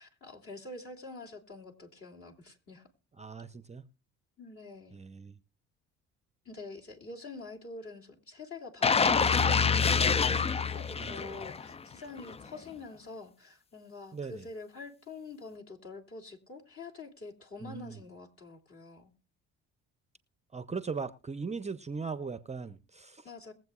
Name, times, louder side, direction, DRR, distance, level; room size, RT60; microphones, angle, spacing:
voice 1, 0.0-2.9 4.4-5.0 6.4-19.1 23.2-23.5, left 3 dB, 40° left, 2.8 m, -46 dB
voice 2, 3.2-3.9 4.9-5.4 11.0-11.4 14.1-14.4 17.6-18.0 20.5-23.3, right 5 dB, 20° right, 0.7 m, -39 dB
sound 1, 8.8-11.8 12.2-12.3, left 5 dB, 20° left, 0.4 m, -26 dB
21.5 x 7.7 x 2.4 m
supercardioid pair, 75°, 33 cm